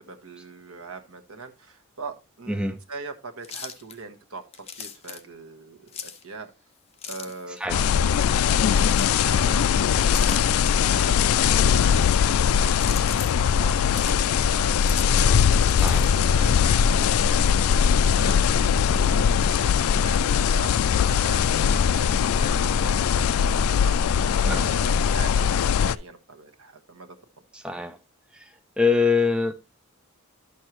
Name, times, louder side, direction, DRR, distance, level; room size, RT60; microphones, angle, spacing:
voice 1, 0.0-6.5 7.0-8.9 9.2-10.4 10.8-11.1 11.7-14.7 16.0-17.6 18.1-27.2, right 4 dB, 85° right, 1.3 m, -41 dB
voice 2, 2.5-2.8 7.6-7.8 15.8-16.1 24.4-24.7 27.5-28.0 28.3-28.5 28.8-29.5, left 4 dB, 5° right, 0.4 m, -24 dB
sound 1, 3.4-4.0 4.5-5.2 5.9-6.2 6.9-7.6 8.7-9.1 10.1-10.7 11.7-12.3 12.8-13.3 13.8-14.2 14.8-15.3 15.7-16.2, left 7 dB, 30° left, 0.7 m, -37 dB
sound 2, 7.7-26.0, left 7 dB, 80° left, 0.3 m, -21 dB
sound 3, 13.5-23.9, equal, 70° right, 2.3 m, -47 dB
11.0 x 6.4 x 3.0 m
head